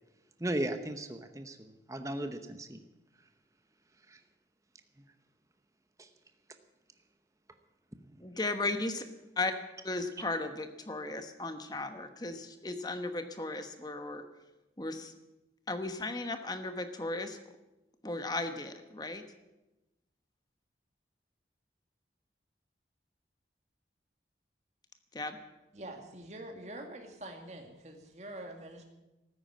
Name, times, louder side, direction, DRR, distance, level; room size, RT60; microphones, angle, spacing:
voice 1, 0.4-2.8 4.1-4.2 5.0-5.1 6.0-6.1 8.0-8.2, right 1 dB, 20° right, 7 dB, 0.9 m, -37 dB
voice 2, 8.2-9.1 9.4-9.5 9.8-14.2 14.8-15.1 15.7-17.4 18.0-19.2 25.1-25.4, left 2 dB, 20° left, 8 dB, 1.1 m, -36 dB
voice 3, 25.7-28.8, right 1 dB, 40° right, 4 dB, 2.1 m, -45 dB
14.0 x 9.7 x 9.3 m, 1.0 s
head